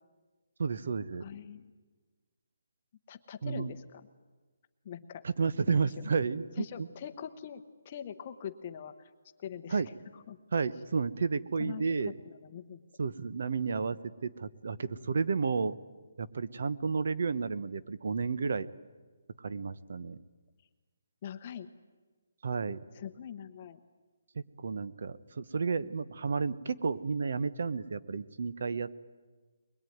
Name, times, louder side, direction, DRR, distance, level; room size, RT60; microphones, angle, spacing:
voice 1, 0.6-1.2 3.4-3.7 5.2-6.9 9.7-9.9 10.5-12.1 13.0-15.8 16.2-18.7 19.4-20.2 22.4-22.8 24.3-28.9, right 5 dB, 50° right, 15 dB, 1.0 m, -32 dB
voice 2, 1.2-1.6 3.1-4.0 4.8-5.2 5.7-6.1 6.6-9.1 9.4-9.8 10.3-10.4 11.6-12.8 21.2-21.7 22.9-23.8, left 8 dB, 25° left, 8 dB, 0.9 m, -43 dB
23.0 x 21.0 x 9.4 m, 1.4 s
hypercardioid pair, 175°, 0 cm